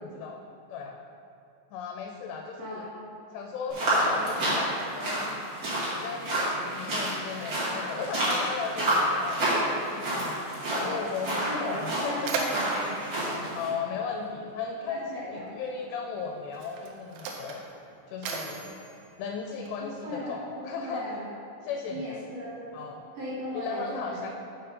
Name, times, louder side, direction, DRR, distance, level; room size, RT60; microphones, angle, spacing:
voice 1, 0.0-0.4 0.7-1.0 1.7-2.9 3.3-5.4 5.9-10.4 10.7-12.3 13.6-17.7 18.1-18.8 19.2-21.2 21.6-22.2 22.7-23.0 23.5-24.3, left 5 dB, 80° left, 2 dB, 2.6 m, -36 dB
voice 2, 2.6-3.0 3.8-4.7 7.6-7.8 11.3-13.0 14.9-15.4 19.8-21.4 21.9-22.6 23.1-24.2, equal, 65° right, -9 dB, 1.7 m, -37 dB
sound 1, 3.7-13.7, right 1 dB, 45° right, 1.5 m, -29 dB
Mechanisms, 11.3-11.4 11.7-14.5 15.5-15.6 16.4-20.0, right 4 dB, 80° right, 2.4 m, -37 dB
6.8 x 5.2 x 5.1 m, 2.5 s
omnidirectional pair, 5.1 m